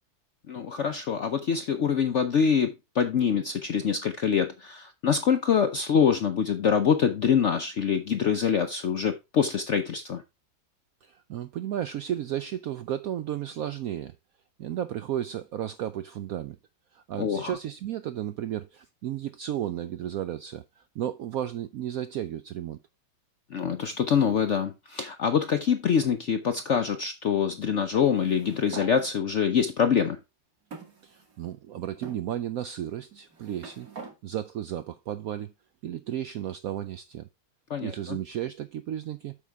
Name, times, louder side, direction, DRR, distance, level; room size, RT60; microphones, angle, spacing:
voice 1, 0.5-10.2 17.2-17.5 23.5-30.2 37.7-38.2, left 7 dB, 65° left, 0.7 m, -25 dB
voice 2, 11.0-14.1 14.6-16.6 16.9-22.8 31.0-33.9 34.2-35.5 35.8-37.3 37.8-39.4, right 11 dB, 75° right, 0.8 m, -33 dB
sound 1, 28.1-28.9 29.8-29.9 30.7-31.5 32.0-32.2 33.1-34.2, right 4 dB, 50° right, 2.3 m, -44 dB
8.4 x 6.3 x 3.5 m
omnidirectional pair, 2.0 m